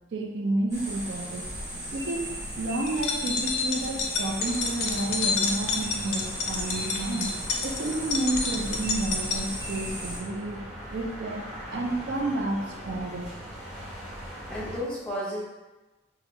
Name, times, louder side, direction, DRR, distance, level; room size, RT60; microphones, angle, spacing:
voice 1, 0.1-1.4 1.9-2.3 2.6-7.3 7.6-10.6 10.9-11.4 11.7-13.3, right 2 dB, 70° right, 1 dB, 0.4 m, -30 dB
sound 1, 0.7-10.2, right 1 dB, 20° right, 1.1 m, -36 dB
sound 2, 2.9-9.4, left 4 dB, 90° left, 0.5 m, -29 dB
sound 3, 4.3-14.8, equal, 35° right, 1.5 m, -41 dB
voice 2, 14.2-15.4, equal, 5° left, -7 dB, 0.6 m, -33 dB
2.8 x 2.1 x 3.6 m, 1.1 s
head